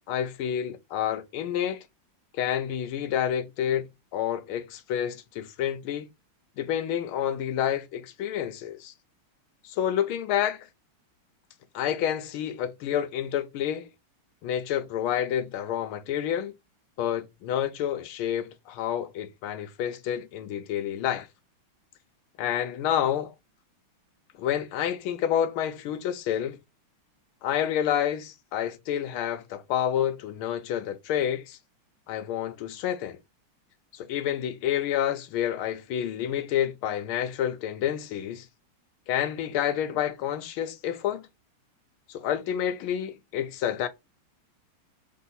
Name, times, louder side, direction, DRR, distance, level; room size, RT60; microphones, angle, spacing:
voice 1, 0.1-1.8 2.3-6.1 6.6-8.9 9.6-10.7 11.7-13.9 14.4-16.5 17.0-21.3 22.4-23.3 24.4-26.6 27.4-31.6 32.1-33.2 33.9-38.5 39.1-41.3 42.1-43.9, left 10 dB, 85° left, 1.5 m, -29 dB
3.8 x 2.7 x 4.0 m
omnidirectional pair, 2.3 m